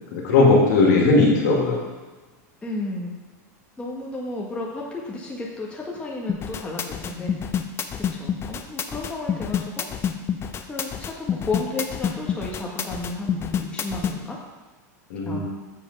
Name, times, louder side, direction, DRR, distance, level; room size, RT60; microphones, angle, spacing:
voice 1, 0.1-1.8 15.1-15.4, left 3 dB, 75° left, -2 dB, 2.3 m, -17 dB
voice 2, 2.6-3.1 3.8-7.4 8.1-9.9 10.7-14.4 15.2-15.4, left 2 dB, 10° left, -4 dB, 1.6 m, -32 dB
sound 1, 6.3-14.1, left 8 dB, 25° left, 0.6 m, -27 dB
7.4 x 4.9 x 5.5 m, 1.3 s
supercardioid pair, 120°, 9 cm